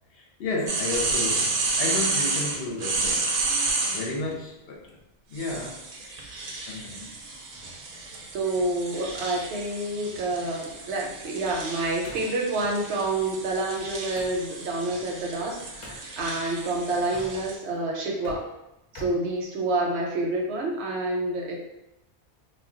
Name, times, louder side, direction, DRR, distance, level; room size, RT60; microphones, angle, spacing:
voice 1, 0.1-3.4 3.8-5.0 5.3-5.8 6.7-7.1, left 2 dB, 70° left, -1 dB, 0.8 m, -32 dB
sound 1, 0.7-4.1 5.4-17.6, right 3 dB, 60° right, 0.6 m, -31 dB
voice 2, 8.3-18.5 18.9-21.6, right 2 dB, 85° right, 0 dB, 0.9 m, -28 dB
sound 2, 9.1-14.4 15.8-16.1 17.0-17.7 18.0-20.0, left 1 dB, 35° left, 0.6 m, -47 dB
2.2 x 2.2 x 3.6 m, 0.87 s
omnidirectional pair, 1.1 m